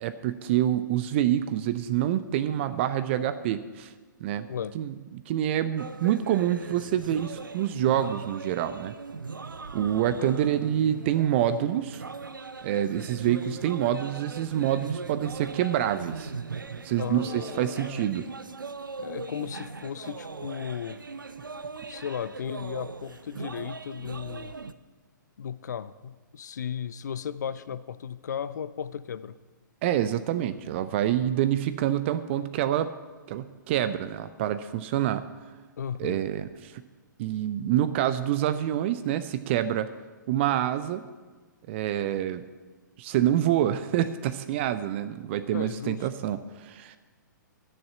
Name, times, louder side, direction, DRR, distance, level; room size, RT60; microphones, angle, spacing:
voice 1, 0.0-3.9 4.2-4.5 4.7-4.9 5.3-8.9 9.7-12.0 12.6-16.3 16.8-18.3 29.8-32.9 33.3-35.3 36.0-36.5 37.2-39.9 40.3-41.0 41.7-42.4 43.0-47.0, right 11 dB, 35° right, 12 dB, 0.5 m, -27 dB
sound 1, 5.8-24.7, right 4 dB, 80° right, 0.6 m, -39 dB
voice 2, 17.0-18.1 19.0-21.0 21.9-24.5 25.4-29.4 35.8-36.2 45.5-46.1, left 8 dB, 60° left, 15 dB, 0.5 m, -35 dB
10.5 x 6.7 x 8.4 m, 1.4 s
figure-of-eight pair, 120°, 11 cm